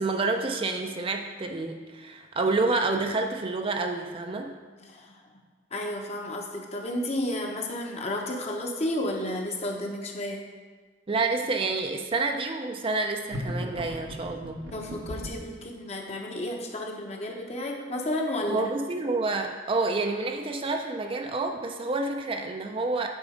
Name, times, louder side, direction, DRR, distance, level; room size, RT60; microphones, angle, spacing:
voice 1, 0.0-4.6 11.1-14.7 18.5-23.1, right 3 dB, 30° right, 4 dB, 0.4 m, -28 dB
voice 2, 4.8-5.2 5.7-10.4 14.7-18.6, left 1 dB, 35° left, 1 dB, 0.9 m, -32 dB
sound 1, 13.3-15.5, equal, 80° right, 1.1 m, -36 dB
8.3 x 3.9 x 5.1 m, 1.4 s
head